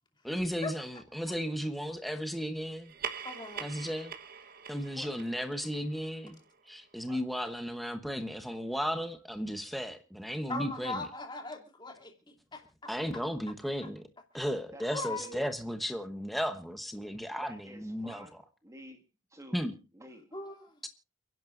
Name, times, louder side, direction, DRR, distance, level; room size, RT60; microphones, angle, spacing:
voice 1, 0.2-2.9 3.6-4.1 4.7-6.4 6.7-11.1 12.9-14.0 14.3-18.3 19.5-19.7 20.8-20.9, equal, ahead, 1.0 m, -35 dB
sound 1, 2.8-7.6, right 7 dB, 45° right, 1.1 m, -44 dB
voice 2, 3.2-3.6 10.5-12.6 14.9-15.4 20.3-20.6, left 3 dB, 20° left, 2.7 m, -39 dB
voice 3, 14.7-15.5 17.3-19.0 19.3-19.6 19.9-20.4, right 1 dB, 15° right, 1.8 m, -50 dB
29.5 x 10.5 x 2.6 m
head